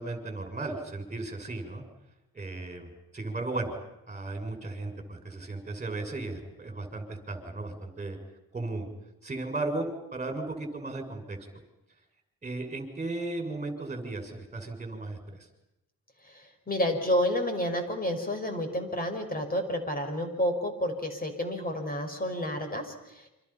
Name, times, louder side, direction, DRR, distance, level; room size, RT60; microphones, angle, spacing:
voice 1, 0.0-1.8 2.3-2.9 3.1-3.7 4.1-8.2 8.5-8.9 9.2-11.4 12.4-15.2, right 2 dB, 20° right, 4 dB, 6.8 m, -35 dB
voice 2, 16.2-23.3, left 1 dB, 25° left, 5 dB, 5.8 m, -30 dB
29.5 x 26.5 x 5.9 m, 0.91 s
cardioid pair, 95°, 35 cm